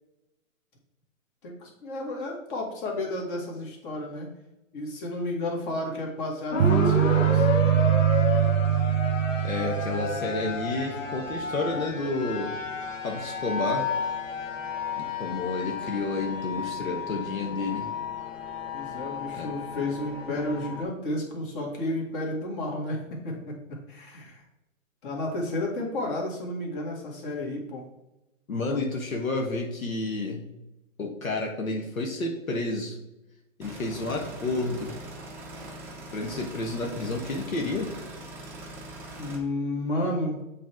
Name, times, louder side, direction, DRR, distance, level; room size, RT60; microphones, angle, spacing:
voice 1, 1.4-4.3 4.7-7.5 18.7-23.6 23.9-24.4 25.0-27.9 28.7-28.8 39.2-40.4, left 1 dB, 40° left, -1 dB, 2.0 m, -32 dB
sound 1, 6.5-20.8, left 5 dB, 65° left, 1.2 m, -32 dB
sound 2, 6.6-10.8, right 11 dB, 65° right, 0.6 m, -23 dB
voice 2, 9.4-12.5 13.0-13.9 15.0-17.9 19.3-19.5 28.5-30.4 31.0-33.0 33.6-34.9 36.1-37.9, left 2 dB, 85° left, 1 dB, 1.4 m, -30 dB
sound 3, 33.6-39.4, right 1 dB, 5° right, 0.6 m, -41 dB
7.3 x 3.4 x 4.5 m, 0.92 s
hypercardioid pair, 130°, 40 cm